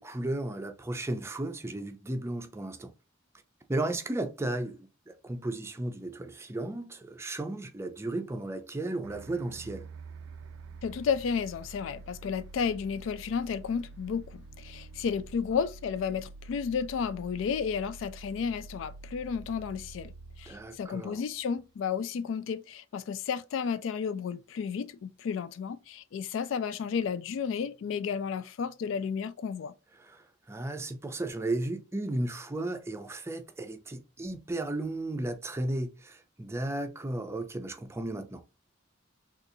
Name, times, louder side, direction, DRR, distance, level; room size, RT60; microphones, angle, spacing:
voice 1, 0.0-2.9 3.7-4.8 5.1-9.9 20.5-21.2 30.0-38.4, right 2 dB, 15° right, 0.5 m, -34 dB
sound 1, 9.0-21.8, right 3 dB, 80° right, 0.3 m, -47 dB
voice 2, 10.8-20.1 20.4-29.7, left 6 dB, 70° left, 0.3 m, -32 dB
3.9 x 2.4 x 2.7 m
head